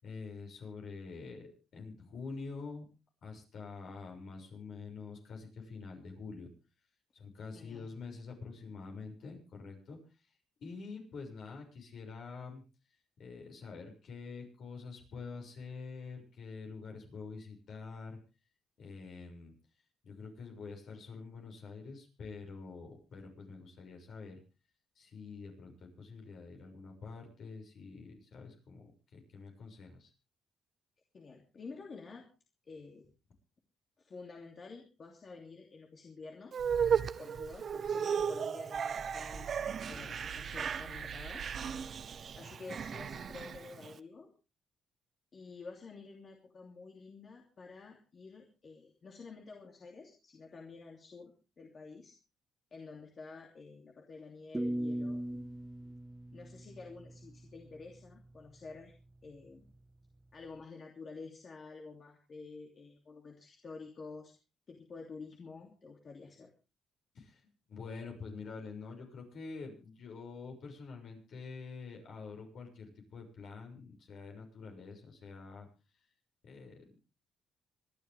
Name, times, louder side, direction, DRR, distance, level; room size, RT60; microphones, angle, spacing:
voice 1, 0.0-2.8 3.2-6.5 7.1-10.0 10.6-12.6 13.2-18.2 18.8-19.5 20.0-24.4 25.0-30.1 67.1-67.4 67.7-75.7 76.4-76.9, left 4 dB, 65° left, 3 dB, 6.4 m, -46 dB
voice 2, 7.5-7.9 31.1-32.3 32.6-33.1 34.0-36.6 37.2-41.5 42.4-44.3 45.3-52.1 52.7-55.2 56.3-58.9 59.2-59.7 60.3-64.3 64.7-66.5, left 4 dB, 45° left, 1 dB, 2.8 m, -50 dB
sound 1, 36.5-43.9, right 7 dB, 50° right, 0.9 m, -35 dB
sound 2, 39.0-41.9, right 7 dB, 35° right, 2.6 m, -49 dB
sound 3, 54.5-57.5, right 1 dB, 10° right, 1.3 m, -38 dB
26.0 x 11.0 x 3.5 m, 0.31 s
cardioid pair, 90°, 0 cm